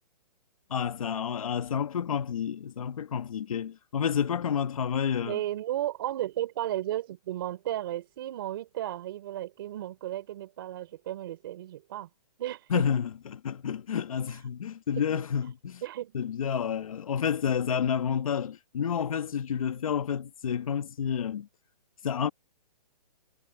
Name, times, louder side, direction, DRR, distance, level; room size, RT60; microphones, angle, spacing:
voice 1, 0.7-5.4 12.7-15.8 16.1-21.5 22.0-22.3, left 8 dB, 55° left, 1.8 m, -30 dB
voice 2, 5.2-12.1 12.4-12.8 15.2-15.3 15.8-16.2, right 13 dB, 35° right, 3.6 m, -34 dB
hypercardioid pair, 175°, 21 cm